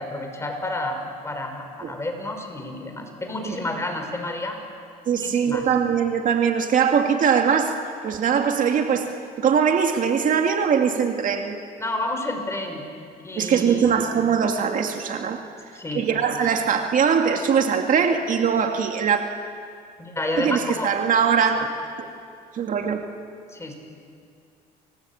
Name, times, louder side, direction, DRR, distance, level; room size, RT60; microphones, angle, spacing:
voice 1, 0.0-4.6 5.2-5.6 11.8-12.9 13.2-13.9 15.8-16.1 20.0-20.9 21.5-21.7 23.5-23.7, left 2 dB, 15° left, 4 dB, 5.5 m, -30 dB
voice 2, 5.1-7.7 8.0-9.1 9.4-11.6 13.4-15.4 15.9-19.2 20.4-21.6 22.0-22.1 22.5-23.0, right 7 dB, 50° right, 4 dB, 2.3 m, -21 dB
29.5 x 22.5 x 8.9 m, 2.3 s
cardioid pair, 110°, 17 cm